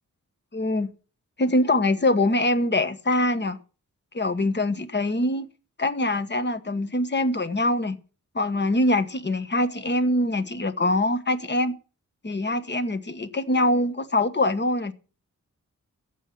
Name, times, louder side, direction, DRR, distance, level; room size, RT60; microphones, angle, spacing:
voice 1, 0.5-0.9 1.4-3.6 4.1-5.5 5.8-8.0 8.3-11.7 12.2-14.9, left 1 dB, 35° left, 1.4 m, -23 dB
14.5 x 8.3 x 6.1 m
wide cardioid pair, 105°, 31 cm